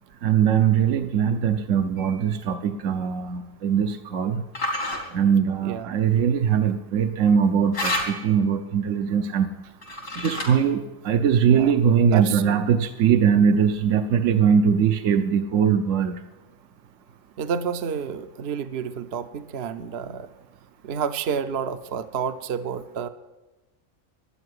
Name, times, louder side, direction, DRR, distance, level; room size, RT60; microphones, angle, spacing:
voice 1, 0.2-4.4 5.1-9.5 10.1-16.2, right 7 dB, 75° right, 8 dB, 1.2 m, -21 dB
sound 1, 2.0-2.3 4.6-5.0 7.7-8.4 9.8-10.7, left 1 dB, 85° left, 3.5 m, -29 dB
voice 2, 5.6-5.9 11.5-11.7 12.1-12.7 17.4-20.3 20.8-23.1, right 7 dB, 60° right, 11 dB, 0.9 m, -29 dB
12.5 x 9.2 x 9.6 m, 1.1 s
omnidirectional pair, 1.3 m